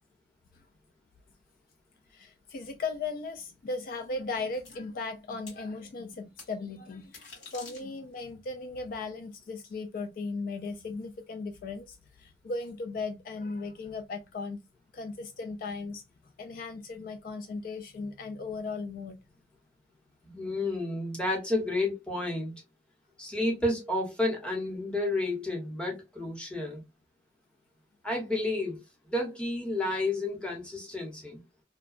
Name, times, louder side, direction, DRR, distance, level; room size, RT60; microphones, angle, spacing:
voice 1, 2.1-14.6 14.9-16.0 16.4-19.2, left 3 dB, 55° left, 0.3 m, -37 dB
sound 1, 4.6-4.7 5.5-5.6 6.4-6.5 7.0-8.2, left 4 dB, 80° left, 1.4 m, -47 dB
voice 2, 20.2-22.5 23.2-26.8 28.0-28.8 29.1-31.4, left 2 dB, 5° left, 0.8 m, -31 dB
2.8 x 2.1 x 2.4 m
head